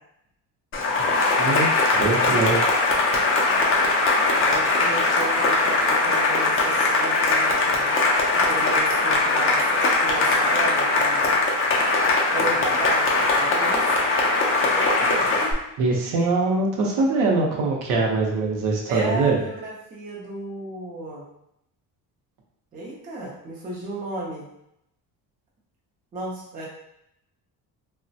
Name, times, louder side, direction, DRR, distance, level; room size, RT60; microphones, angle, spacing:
Cheering / Applause, 0.7-15.5, left 3 dB, 35° left, 0.4 m, -21 dB
voice 1, 1.4-2.6 15.8-19.4, right 3 dB, 60° right, -1 dB, 0.7 m, -23 dB
voice 2, 4.4-8.0 8.3-9.6 10.0-11.4 12.3-13.1 13.4-13.8 18.9-21.2 22.7-24.4 26.1-26.7, right 1 dB, 25° right, -4 dB, 0.5 m, -33 dB
3.1 x 2.1 x 2.6 m, 0.80 s
cardioid pair, 170°, 37 cm